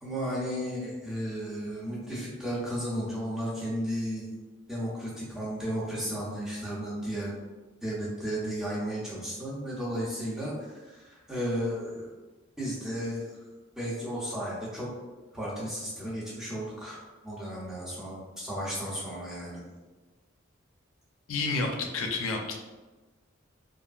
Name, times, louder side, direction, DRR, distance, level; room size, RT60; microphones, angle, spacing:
voice 1, 0.0-4.3 4.7-7.3 7.8-12.1 12.6-13.3 13.8-14.9 15.3-19.6, equal, ahead, -7 dB, 0.6 m, -34 dB
voice 2, 21.3-22.5, left 3 dB, 75° left, 2 dB, 0.4 m, -30 dB
2.8 x 2.5 x 2.3 m, 1.2 s
head